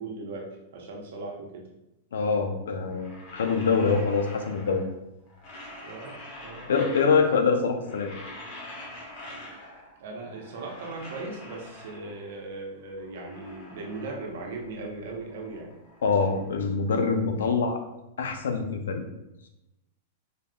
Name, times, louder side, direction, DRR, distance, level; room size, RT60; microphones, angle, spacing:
voice 1, 0.0-1.7 5.8-6.7 10.0-15.7, right 3 dB, 70° right, 0 dB, 0.9 m, -38 dB
voice 2, 2.1-4.8 6.7-8.1 16.0-17.8 18.2-19.0, left 5 dB, 85° left, 5 dB, 0.5 m, -25 dB
sound 1, 2.8-5.0 5.3-7.4 7.7-10.0 10.2-12.3 12.8-14.8 15.1-17.3, left 1 dB, 55° left, 1.3 m, -45 dB
3.7 x 3.6 x 2.3 m, 0.92 s
hypercardioid pair, 120°, 0 cm